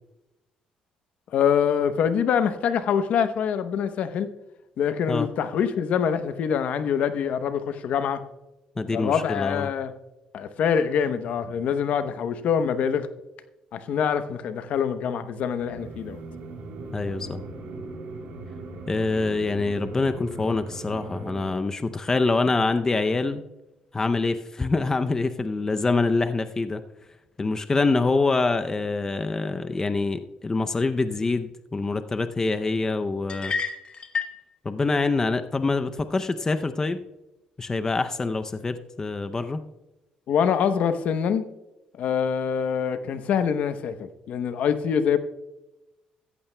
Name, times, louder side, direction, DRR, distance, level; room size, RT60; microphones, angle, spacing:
voice 1, 1.3-4.3 4.8-8.2 8.9-9.9 10.3-13.1 13.7-16.2 40.3-41.4 41.9-45.2, left 7 dB, 65° left, 10 dB, 0.8 m, -25 dB
voice 2, 8.8-9.7 16.9-17.4 18.9-23.4 23.9-26.8 27.4-33.5 34.6-37.0 37.6-39.6, left 3 dB, 20° left, 9 dB, 0.5 m, -25 dB
sound 1, 15.6-21.5, right 3 dB, 75° right, 3.1 m, -39 dB
sound 2, 33.3-34.4, left 5 dB, 40° left, 1.0 m, -29 dB
14.5 x 14.5 x 2.2 m, 0.99 s
cardioid pair, 100°, 3 cm